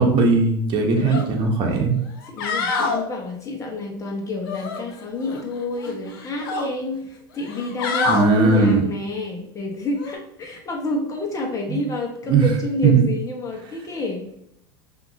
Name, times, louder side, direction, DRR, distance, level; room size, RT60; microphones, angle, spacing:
voice 1, 0.0-2.0 8.1-8.8 11.7-11.8 12.3-12.5 12.8-13.0, right 4 dB, 45° right, 2 dB, 1.1 m, -18 dB
voice 2, 0.8-1.3 2.3-14.2, left 2 dB, 30° left, 1 dB, 1.3 m, -29 dB
sound 1, 1.0-1.2 1.6-1.7 2.2-3.0 4.4-5.4 5.8-6.7 7.4-8.3 10.0-10.1, left 3 dB, 80° left, 0.8 m, -26 dB
5.4 x 2.9 x 2.8 m, 0.73 s
supercardioid pair, 105°, 12 cm